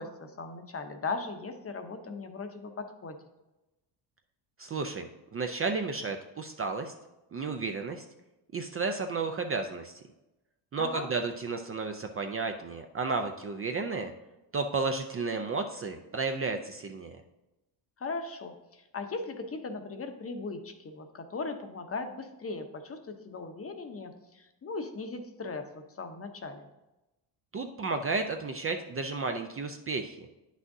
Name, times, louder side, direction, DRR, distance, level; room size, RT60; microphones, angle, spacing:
voice 1, 0.0-3.2 10.8-11.1 18.0-26.7, left 3 dB, 30° left, 7 dB, 0.8 m, -38 dB
voice 2, 4.6-6.9 7.3-8.0 8.5-10.0 10.7-14.1 14.5-17.1 27.5-30.3, right 4 dB, 30° right, 6 dB, 0.4 m, -32 dB
9.4 x 6.2 x 2.7 m, 1.0 s
cardioid pair, 100°, 48 cm